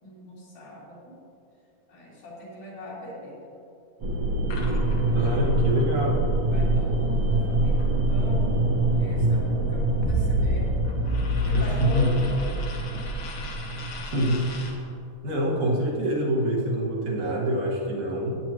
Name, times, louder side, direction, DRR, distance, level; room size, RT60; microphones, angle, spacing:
voice 1, 0.0-1.2 1.9-3.5 6.4-10.7 11.0-13.5, equal, 75° left, -7 dB, 4.6 m, -41 dB
sound 1, 4.0-14.5, right 2 dB, 55° right, 1.9 m, -25 dB
sound 2, 4.5-8.6 8.9-14.8, left 3 dB, 55° left, 1.6 m, -43 dB
voice 2, 5.1-6.2 11.5-11.6 11.9-12.2 14.0-14.5 15.2-18.4, right 1 dB, 70° right, -5 dB, 3.3 m, -25 dB
sound 3, 10.0-13.4, equal, 10° left, 1.4 m, -28 dB
15.5 x 9.6 x 3.0 m, 2.7 s
omnidirectional pair, 3.6 m